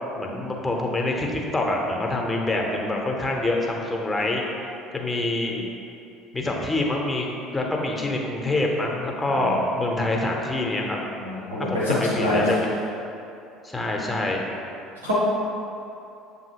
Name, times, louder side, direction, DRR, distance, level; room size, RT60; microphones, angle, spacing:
voice 1, 0.1-4.5 4.9-5.7 6.3-11.0 11.7-12.7 13.6-14.5, left 2 dB, 15° left, 0 dB, 0.7 m, -26 dB
voice 2, 11.2-12.4 15.0-15.1, left 1 dB, 80° right, -8 dB, 0.7 m, -25 dB
7.2 x 2.7 x 2.8 m, 2.7 s
figure-of-eight pair, 60°, 0 cm